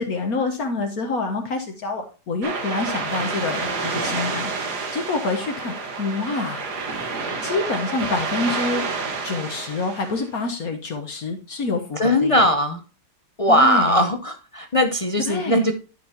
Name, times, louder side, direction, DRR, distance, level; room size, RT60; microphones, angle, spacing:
voice 1, 0.0-4.5 4.9-6.6 7.4-8.8 9.2-12.5 13.5-14.1 15.2-15.7, left 3 dB, 65° left, 4 dB, 1.6 m, -27 dB
sound 1, 2.4-10.3, right 4 dB, 75° right, 2.1 m, -29 dB
voice 2, 12.0-12.8 13.4-15.7, equal, 45° left, 7 dB, 0.4 m, -19 dB
12.0 x 6.0 x 2.8 m, 0.33 s
omnidirectional pair, 1.7 m